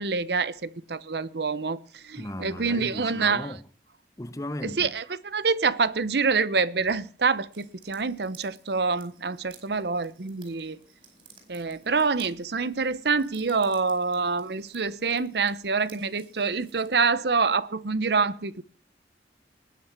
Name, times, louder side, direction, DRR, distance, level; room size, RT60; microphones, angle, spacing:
voice 1, 0.0-3.5 4.6-10.8 11.5-18.6, right 4 dB, 70° right, 0.8 m, -26 dB
voice 2, 2.1-3.6 4.2-4.9, left 1 dB, 20° left, 0.7 m, -36 dB
sound 1, 7.5-17.1, right 5 dB, 30° right, 4.9 m, -56 dB
20.0 x 6.6 x 7.2 m
head